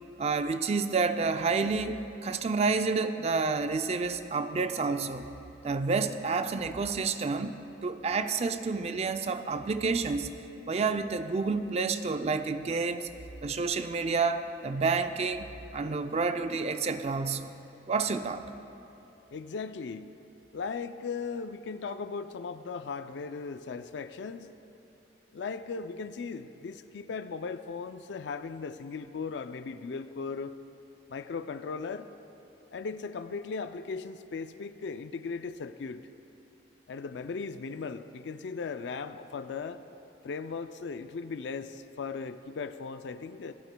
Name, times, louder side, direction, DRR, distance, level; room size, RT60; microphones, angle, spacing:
voice 1, 0.2-5.3 5.6-10.3 10.7-13.1 13.4-17.5 17.9-18.4, right 4 dB, 35° right, 9 dB, 0.4 m, -29 dB
voice 2, 19.3-20.1 20.5-24.5 25.3-30.5 31.1-32.1 32.7-36.1 36.9-39.8 40.2-43.5, left 5 dB, 70° left, 11 dB, 0.4 m, -37 dB
26.5 x 12.5 x 2.2 m, 3.0 s
head